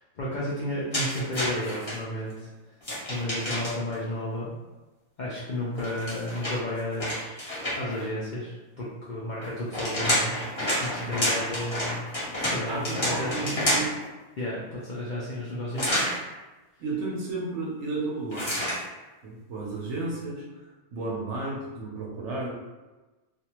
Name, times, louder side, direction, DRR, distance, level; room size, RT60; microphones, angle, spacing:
voice 1, 0.0-2.5 3.1-4.6 5.2-10.4 10.8-12.0 12.4-13.9 14.4-16.2, left 1 dB, 75° left, -7 dB, 0.4 m, -33 dB
sound 1, 0.9-2.0 2.8-3.9 5.7-8.0 9.4-14.0 15.8-16.2 18.3-18.8, equal, 25° left, 0.8 m, -29 dB
voice 2, 12.7-13.9 16.8-18.6 19.2-20.6 20.9-22.5, right 3 dB, 65° right, -3 dB, 0.8 m, -33 dB
2.5 x 2.3 x 2.9 m, 1.1 s
omnidirectional pair, 1.5 m